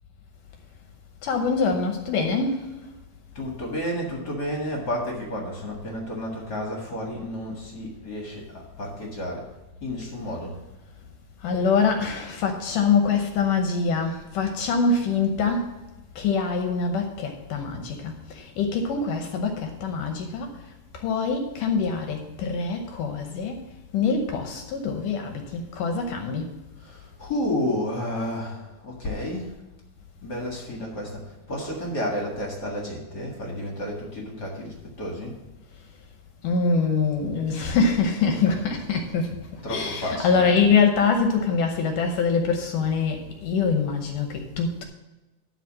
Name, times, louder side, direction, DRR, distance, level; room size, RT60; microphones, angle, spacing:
voice 1, 1.2-2.7 11.4-15.7 16.2-20.5 20.9-23.6 23.9-26.5 36.4-44.8, left 5 dB, 75° left, 4 dB, 2.2 m, -24 dB
voice 2, 3.3-9.5 9.8-10.6 26.8-29.6 30.2-35.4 39.6-40.6, left 1 dB, 40° left, -1 dB, 1.5 m, -31 dB
12.0 x 4.1 x 7.3 m, 1.1 s
omnidirectional pair, 4.3 m